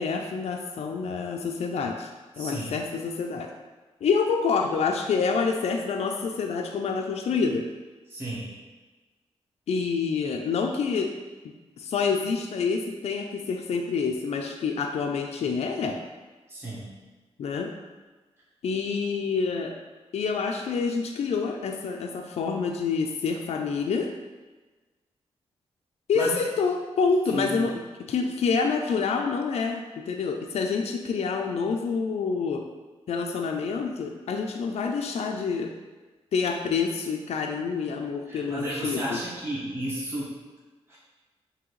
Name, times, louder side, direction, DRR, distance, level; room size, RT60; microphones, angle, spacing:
voice 1, 0.0-2.1 2.4-3.5 4.0-7.6 9.7-11.1 11.8-16.0 17.4-17.7 18.6-19.7 20.1-24.1 26.1-27.7 28.1-32.6 33.1-35.7 36.3-39.2, left 5 dB, 70° left, 3 dB, 0.4 m, -27 dB
voice 2, 2.4-2.7 8.1-8.5 16.5-16.9 26.1-26.4 27.3-27.6 38.3-40.3 40.9-41.0, right 1 dB, 20° right, -8 dB, 1.3 m, -32 dB
6.1 x 2.8 x 3.1 m, 1.3 s
wide cardioid pair, 110°, 11 cm